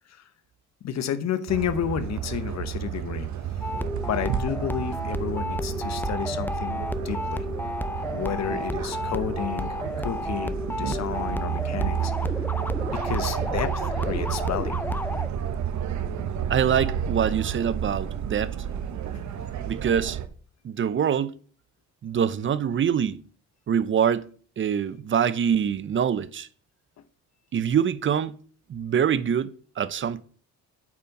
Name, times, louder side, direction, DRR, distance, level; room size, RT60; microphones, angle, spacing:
voice 1, 0.8-3.3 4.1-7.4 8.1-12.3 12.9-14.8, left 9 dB, 60° left, 1.0 m, -31 dB
sound 1, 1.5-20.3, right 9 dB, 70° right, 0.9 m, -31 dB
sound 2, 3.6-15.3, left 1 dB, 5° left, 0.5 m, -32 dB
voice 2, 16.5-18.6 19.7-20.2 20.6-21.4 22.0-23.2 23.7-24.3 24.6-26.5 27.5-28.3 28.7-30.2, right 8 dB, 40° right, 0.6 m, -24 dB
8.5 x 4.4 x 5.3 m
cardioid pair, 90°, 30 cm